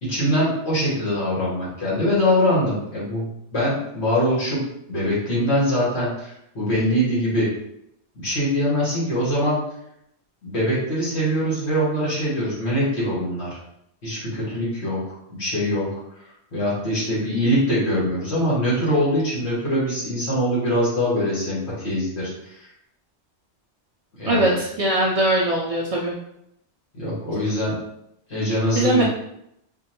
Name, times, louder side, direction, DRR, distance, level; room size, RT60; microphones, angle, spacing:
voice 1, 0.0-7.5 8.1-9.6 10.4-13.6 14.0-16.0 16.5-22.6 24.2-24.5 26.9-27.8 28.3-29.0, equal, 70° left, -8 dB, 1.7 m, -23 dB
voice 2, 24.2-26.1 28.7-29.0, right 1 dB, 50° right, -3 dB, 0.4 m, -21 dB
5.3 x 2.2 x 2.8 m, 0.78 s
omnidirectional pair, 1.2 m